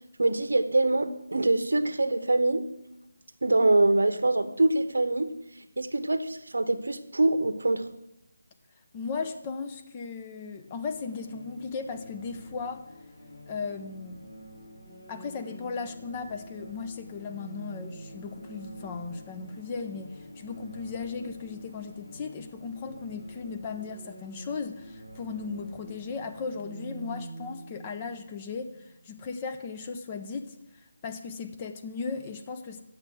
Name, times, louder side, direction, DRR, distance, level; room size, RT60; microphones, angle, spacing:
voice 1, 0.2-2.6 3.4-5.3 5.8-7.8, right 2 dB, 80° right, 11 dB, 1.0 m, -24 dB
voice 2, 8.9-12.8 13.5-14.3 15.1-32.8, left 5 dB, 20° left, 7 dB, 0.7 m, -37 dB
sound 1, 10.5-29.1, right 1 dB, 70° left, 2.7 m, -47 dB
8.8 x 7.1 x 7.7 m, 0.87 s
figure-of-eight pair, 165°, 0 cm